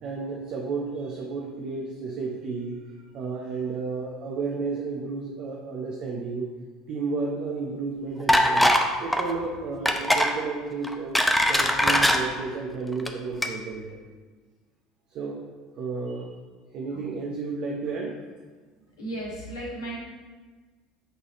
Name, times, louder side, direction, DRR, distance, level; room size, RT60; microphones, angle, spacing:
voice 1, 0.0-2.8 3.1-6.5 6.9-8.7 9.0-11.2 11.5-14.0 15.1-15.5 15.8-16.3 16.7-18.2, right 4 dB, 55° right, -2 dB, 0.8 m, -32 dB
sound 1, 8.3-8.9 9.1-9.3 9.9-10.3 10.8-12.2 12.9-13.1 13.4-13.5, equal, 5° left, 0.6 m, -20 dB
voice 2, 19.0-20.0, right 1 dB, 80° left, -6 dB, 1.9 m, -34 dB
8.1 x 4.0 x 3.0 m, 1.4 s
figure-of-eight pair, 70°, 2 cm